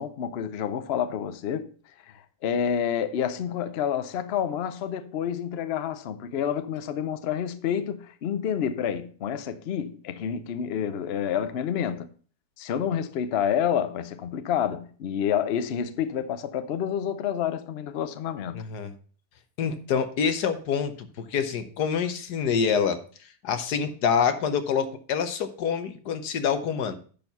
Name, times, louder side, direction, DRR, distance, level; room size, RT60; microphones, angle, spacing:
voice 1, 0.0-1.7 2.4-12.1 12.6-18.6, left 8 dB, 55° left, 0.7 m, -28 dB
voice 2, 18.5-18.9 19.6-23.0 23.4-27.0, left 6 dB, 80° left, 1.5 m, -26 dB
10.5 x 4.6 x 5.4 m
omnidirectional pair, 1.7 m